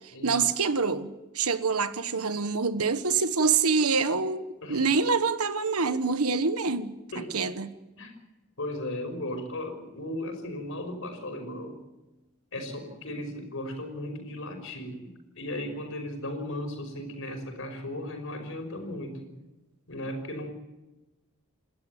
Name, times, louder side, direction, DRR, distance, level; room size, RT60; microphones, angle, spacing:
voice 1, 0.2-7.7, right 4 dB, 85° right, 1.3 m, -26 dB
voice 2, 8.6-11.8 12.5-19.3 19.9-20.5, left 1 dB, 60° left, 5.6 m, -36 dB
29.5 x 13.0 x 9.1 m
head